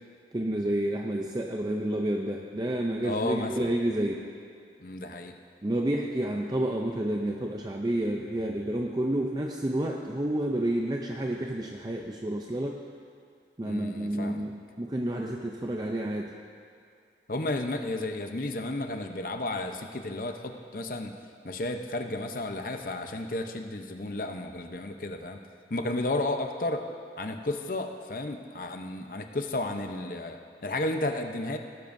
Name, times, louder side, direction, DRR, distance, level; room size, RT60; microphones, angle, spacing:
voice 1, 0.3-4.3 5.6-12.8 13.6-16.3, right 1 dB, 25° right, 1 dB, 0.5 m, -30 dB
voice 2, 3.0-3.7 4.8-5.3 13.6-14.5 17.3-21.1 21.4-25.4 25.7-26.8 27.2-31.6, left 2 dB, 50° left, 5 dB, 0.8 m, -32 dB
18.0 x 12.5 x 2.6 m, 2.3 s
head